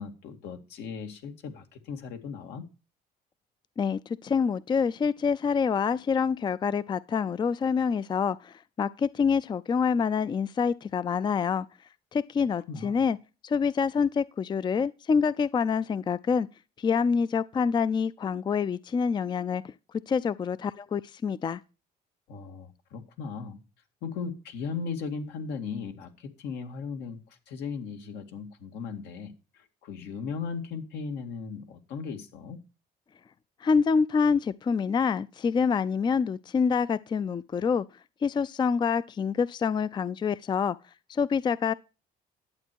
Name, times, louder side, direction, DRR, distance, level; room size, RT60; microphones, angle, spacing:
voice 1, 0.0-2.6 12.7-13.0 22.3-23.6 24.0-27.2 27.5-32.6, left 5 dB, 85° left, 2.1 m, -37 dB
voice 2, 3.8-11.7 12.1-13.2 13.4-16.5 16.8-19.7 20.1-21.6 33.6-37.9 38.2-40.8 41.1-41.7, left 6 dB, 25° left, 0.4 m, -26 dB
11.5 x 8.3 x 4.5 m
cardioid pair, 110°, 17 cm